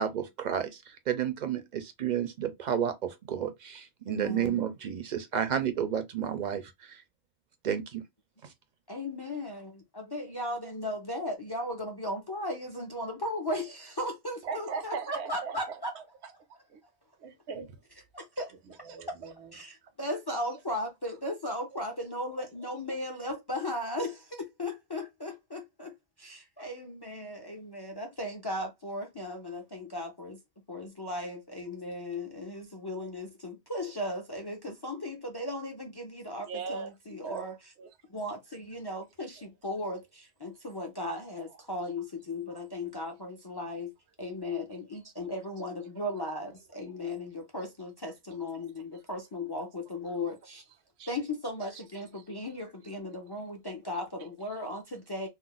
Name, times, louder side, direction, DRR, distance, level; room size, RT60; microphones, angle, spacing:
voice 1, 0.0-7.0 7.6-8.0 8.4-8.5, right 9 dB, 55° right, 0.6 m, -31 dB
voice 2, 4.1-4.6 8.9-15.9 18.1-18.8 19.5-30.4 30.7-37.6 38.1-43.9 44.2-50.6 51.1-55.3, left 1 dB, 35° left, 0.4 m, -36 dB
voice 3, 14.4-16.8 17.2-17.8 18.6-19.9 36.4-37.0 37.2-37.4 37.8-37.9 46.0-46.1 51.0-51.1 51.7-51.8 52.1-52.2, right 5 dB, 85° right, 0.9 m, -40 dB
2.5 x 2.1 x 3.8 m
omnidirectional pair, 1.1 m